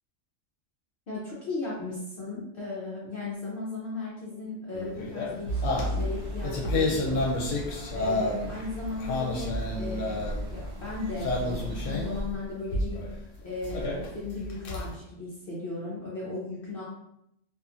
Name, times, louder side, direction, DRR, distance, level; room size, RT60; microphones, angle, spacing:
voice 1, 1.1-7.3 7.9-10.2 10.5-13.0 13.4-16.8, left 3 dB, 55° left, -6 dB, 0.7 m, -36 dB
sound 1, 4.7-8.6 8.9-10.5 11.2-12.3 12.7-13.1 13.6-15.0, left 2 dB, 80° left, 0.9 m, -30 dB
sound 2, 5.5-12.2, right 1 dB, 65° right, 0.9 m, -36 dB
2.7 x 2.3 x 2.4 m, 0.81 s
omnidirectional pair, 1.3 m